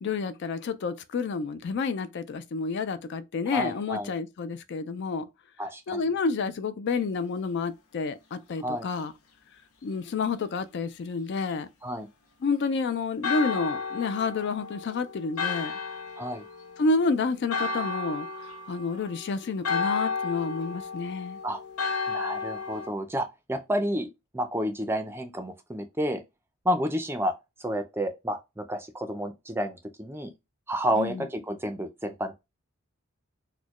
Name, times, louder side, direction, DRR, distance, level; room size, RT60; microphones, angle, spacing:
voice 1, 0.0-5.3 5.9-9.1 9.8-11.7 12.4-15.7 16.8-21.4 30.9-31.3, left 4 dB, 55° left, 0.4 m, -29 dB
voice 2, 3.5-4.1 5.6-6.0 8.6-8.9 11.8-12.1 16.2-16.4 21.4-21.6 22.1-26.2 26.6-27.3 27.6-30.3 30.7-32.3, equal, 10° right, 0.4 m, -30 dB
Church bell, 13.2-22.9, left 4 dB, 85° left, 0.7 m, -33 dB
4.1 x 2.1 x 3.0 m
head